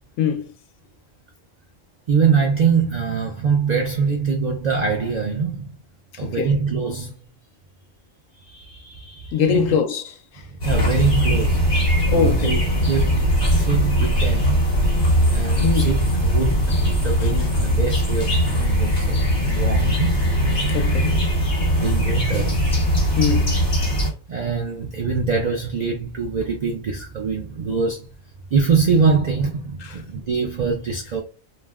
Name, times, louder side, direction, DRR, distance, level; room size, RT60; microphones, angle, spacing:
voice 1, 2.1-5.7 6.2-7.1 8.5-9.7 10.5-14.8 15.3-19.3 19.5-20.8 21.8-22.7 24.3-28.1 28.5-31.2, right 5 dB, 75° right, 0.4 m, -24 dB
voice 2, 6.2-6.6 9.3-10.5 12.1-12.5 15.6-15.9 17.2-17.5 20.7-21.3 23.2-23.5 29.8-30.0, left 7 dB, 80° left, 0.9 m, -23 dB
sound 1, 10.6-24.1, equal, 40° left, 1.3 m, -20 dB
2.5 x 2.1 x 3.4 m
omnidirectional pair, 1.3 m